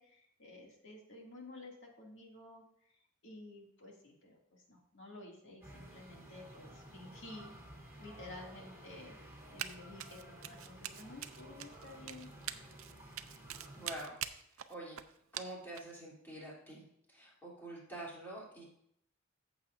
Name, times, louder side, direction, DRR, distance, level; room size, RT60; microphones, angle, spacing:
voice 1, 0.0-2.6 3.2-7.5 8.0-9.2 9.5-12.3, left 2 dB, 60° left, -1 dB, 2.2 m, -52 dB
sound 1, 5.6-14.1, right 1 dB, 10° right, 2.8 m, -54 dB
Run, 9.6-9.7 10.0-16.0, right 11 dB, 70° right, 0.5 m, -44 dB
voice 2, 13.7-14.2 14.7-15.0 15.3-18.6, right 1 dB, 10° left, -6 dB, 3.1 m, -46 dB
14.0 x 7.4 x 2.6 m, 0.72 s
head